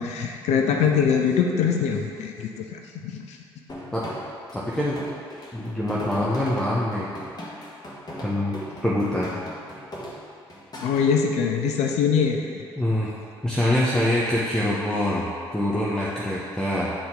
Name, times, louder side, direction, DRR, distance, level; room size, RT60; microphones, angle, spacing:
voice 1, 0.0-3.4 10.8-12.6, left 6 dB, 60° left, 2 dB, 0.6 m, -23 dB
sound 1, 3.7-11.1, equal, 30° left, 1.6 m, -38 dB
voice 2, 4.5-5.0 5.5-7.2 8.2-8.6 8.8-9.3 12.8-13.1 13.4-16.9, left 1 dB, 5° left, -7 dB, 1.0 m, -24 dB
8.6 x 4.2 x 3.8 m, 2.3 s
figure-of-eight pair, 45°, 13 cm